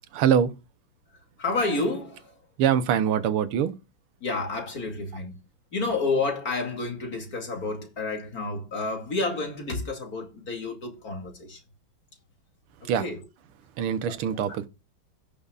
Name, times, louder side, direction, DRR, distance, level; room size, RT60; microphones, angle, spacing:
voice 1, 0.1-0.5 2.6-3.7 12.9-13.0 13.8-14.7, right 8 dB, 90° right, 1.8 m, -23 dB
voice 2, 1.4-2.4 4.2-5.3 5.7-11.6 12.8-13.2 14.0-14.2 14.5-14.6, left 3 dB, 45° left, 2.8 m, -30 dB
16.5 x 6.8 x 2.4 m
omnidirectional pair, 2.3 m